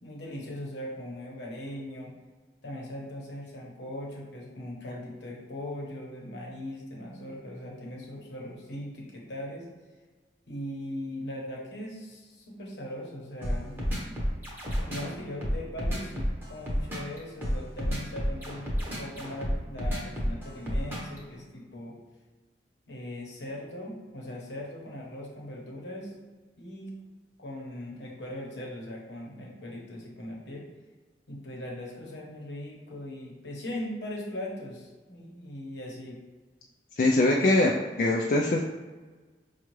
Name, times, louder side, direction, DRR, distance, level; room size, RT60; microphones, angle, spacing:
voice 1, 0.0-2.1 2.6-9.7 10.5-14.2 14.6-18.7 19.0-22.0 22.9-26.2 26.6-26.9 27.4-30.7 31.3-36.2, left 1 dB, 80° left, -2 dB, 1.0 m, -39 dB
sound 1, 13.4-21.2, equal, 10° right, 0.8 m, -30 dB
voice 2, 37.0-38.6, left 2 dB, 50° left, -1 dB, 0.3 m, -23 dB
5.4 x 2.3 x 3.0 m, 1.3 s
head